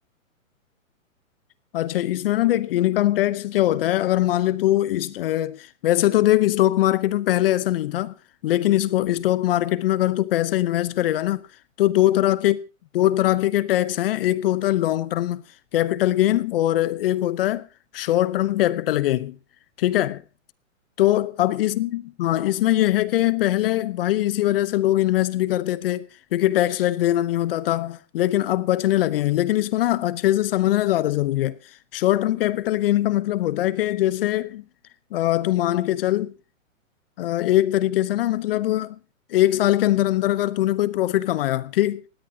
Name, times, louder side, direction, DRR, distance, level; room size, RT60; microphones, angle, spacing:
voice 1, 1.7-8.1 8.4-11.4 11.8-12.6 12.9-15.4 15.7-17.7 17.9-19.4 19.8-20.2 21.0-31.6 31.9-34.6 35.1-36.3 37.2-39.0 39.3-42.0, left 14 dB, 45° left, 0.8 m, -22 dB
19.5 x 17.0 x 2.8 m
hypercardioid pair, 140°, 41 cm